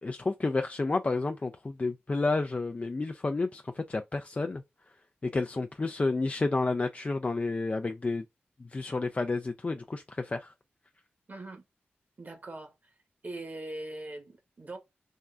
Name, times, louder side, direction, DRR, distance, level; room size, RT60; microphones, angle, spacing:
voice 1, 0.0-4.6 5.2-8.2 8.6-10.5, left 3 dB, 35° left, 0.3 m, -30 dB
voice 2, 11.3-11.6 12.2-12.7 13.2-14.8, right 2 dB, 45° right, 1.0 m, -41 dB
3.6 x 2.1 x 2.4 m
cardioid pair, 50°, 4 cm